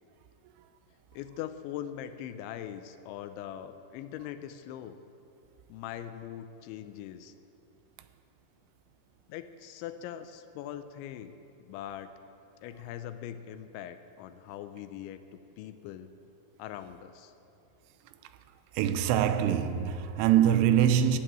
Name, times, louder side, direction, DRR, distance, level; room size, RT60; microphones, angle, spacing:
voice 1, 1.1-5.0 5.7-7.3 9.3-12.1 12.6-15.2 15.6-16.1 16.6-17.3, left 10 dB, 80° left, 2.9 m, -41 dB
voice 2, 18.7-21.2, right 10 dB, 85° right, 3.2 m, -24 dB
15.0 x 9.3 x 8.8 m
omnidirectional pair, 5.5 m